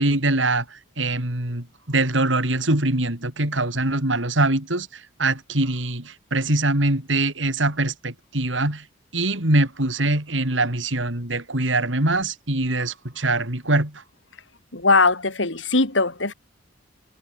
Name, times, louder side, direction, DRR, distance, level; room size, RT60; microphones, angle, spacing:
voice 1, 0.0-4.9 5.2-8.8 9.1-14.0, right 2 dB, 90° right, 4.5 m, -23 dB
voice 2, 14.7-16.3, left 3 dB, 85° left, 3.7 m, -20 dB
head